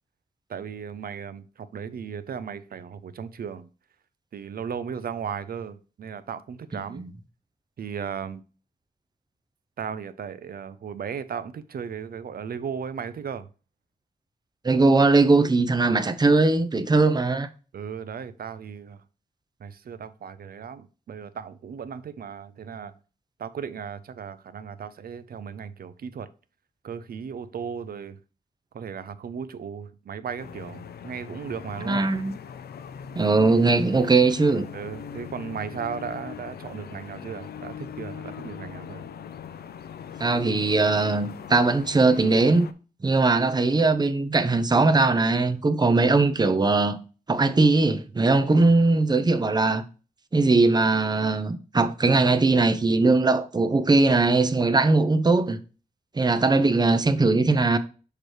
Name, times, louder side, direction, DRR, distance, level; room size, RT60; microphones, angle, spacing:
voice 1, 0.5-3.7 4.3-7.0 7.8-8.4 9.8-13.5 17.7-19.0 19.6-22.9 23.4-26.3 26.8-28.2 28.7-32.0 34.7-39.0 48.5-48.6, right 7 dB, 70° right, 0.6 m, -36 dB
voice 2, 6.7-7.1 14.6-17.5 31.8-32.4 33.1-34.7 40.2-42.7 43.0-47.0 47.3-49.8 50.3-55.6 56.1-57.8, right 3 dB, 25° right, 0.6 m, -20 dB
sound 1, 30.4-42.7, left 8 dB, 90° left, 0.5 m, -40 dB
6.6 x 3.1 x 4.8 m
wide cardioid pair, 105°, 16 cm